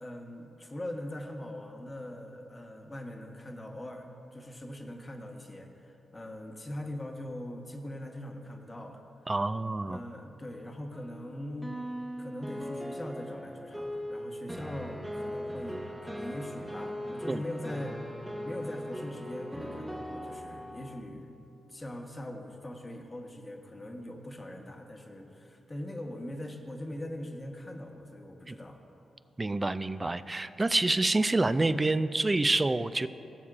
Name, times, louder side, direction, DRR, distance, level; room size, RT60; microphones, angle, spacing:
voice 1, 0.0-9.3 9.8-11.7 12.2-18.0 18.4-21.4 21.7-28.8, left 1 dB, 25° left, 3 dB, 1.1 m, -41 dB
voice 2, 9.3-10.0 17.3-17.4 28.5-28.6 29.4-33.1, right 2 dB, 25° right, 13 dB, 0.3 m, -27 dB
sound 1, 10.9-21.0, equal, 10° right, 0.9 m, -39 dB
17.5 x 7.1 x 2.5 m, 2.8 s
supercardioid pair, 55°, 0 cm